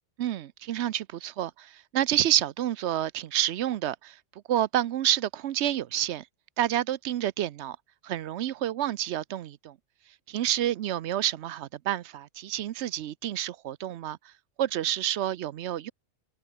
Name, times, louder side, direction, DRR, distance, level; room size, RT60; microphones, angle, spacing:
voice 1, 0.2-4.2 4.5-6.3 6.6-7.8 8.0-9.8 10.3-14.2 14.6-15.9, right 12 dB, 75° right, 0.9 m, -29 dB
omnidirectional pair, 1.2 m